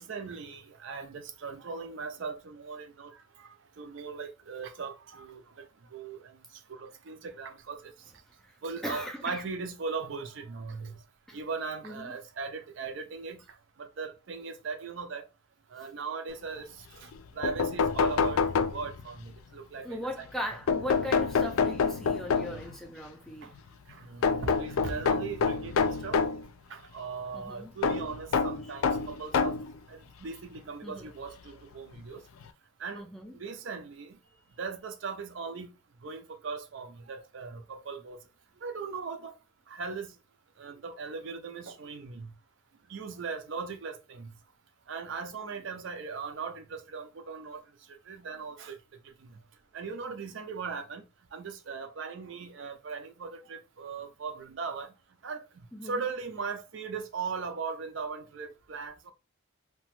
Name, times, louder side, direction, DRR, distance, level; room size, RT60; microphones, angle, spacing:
voice 1, 0.0-5.7 5.9-6.4 6.7-7.9 8.6-11.0 11.3-13.4 13.8-15.3 15.7-16.7 16.9-18.4 18.7-20.3 23.4-23.5 23.9-26.2 26.7-29.6 29.9-32.2 32.8-33.1 33.3-34.2 34.6-35.7 36.0-38.2 38.6-39.3 39.7-40.1 40.6-42.3 42.9-44.3 44.9-47.6 48.1-48.8 49.2-49.4 49.7-51.0 51.3-54.9 55.2-55.4 55.8-59.1, right 5 dB, 65° right, 0.4 m, -39 dB
voice 2, 8.8-9.4 11.3-11.4 11.8-12.1 19.8-23.5 27.3-27.7 30.8-31.1 32.9-33.4 55.7-56.0, equal, ahead, 0.3 m, -38 dB
sound 1, 17.1-17.2 17.4-19.2 20.7-22.7 24.2-26.4 27.8-29.7 30.6-30.7 32.0-32.1 32.4-32.5, left 5 dB, 85° left, 0.4 m, -27 dB
2.9 x 2.2 x 2.9 m
head